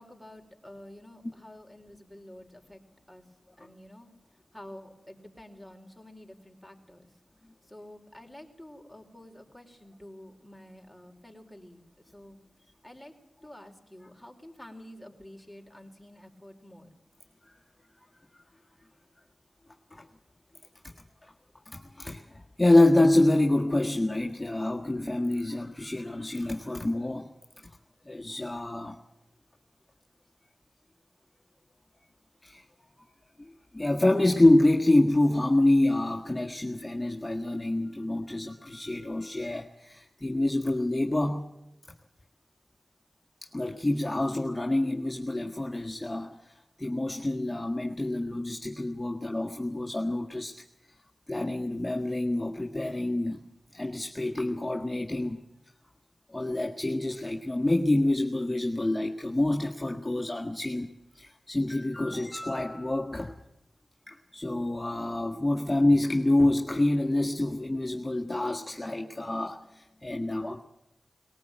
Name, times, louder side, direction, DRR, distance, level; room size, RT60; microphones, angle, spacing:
voice 1, 0.0-3.2 3.6-4.1 4.5-7.1 7.7-11.8 12.1-12.4 12.8-13.1 13.4-16.9, left 1 dB, ahead, 2 dB, 4.6 m, -49 dB
voice 2, 21.7-27.3 28.1-29.0 32.4-32.6 33.7-41.4 43.4-50.7 51.3-53.4 53.7-55.4 56.3-60.9 61.2-63.3 64.1-70.6, left 1 dB, 20° left, 1 dB, 1.8 m, -27 dB
20.0 x 18.5 x 9.1 m, 0.88 s
cardioid pair, 50°, 0 cm